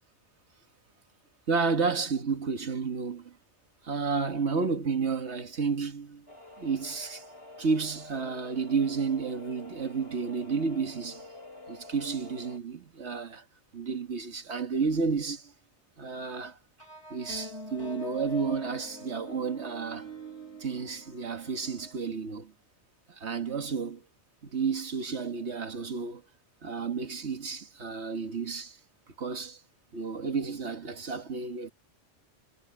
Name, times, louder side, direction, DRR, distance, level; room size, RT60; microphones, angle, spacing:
voice 1, 1.5-3.4 3.8-6.3 6.6-7.2 7.6-11.3 11.7-13.5 13.7-15.5 16.0-16.6 17.1-20.1 20.6-22.5 23.1-24.0 24.4-26.2 26.6-28.8 29.2-29.6 29.9-31.7, right 5 dB, 65° right, 1.9 m, -31 dB
sound 1, 6.3-12.6, left 2 dB, 55° left, 8.4 m, -48 dB
sound 2, 16.8-22.0, left 2 dB, 75° left, 4.0 m, -43 dB
omnidirectional pair, 1.2 m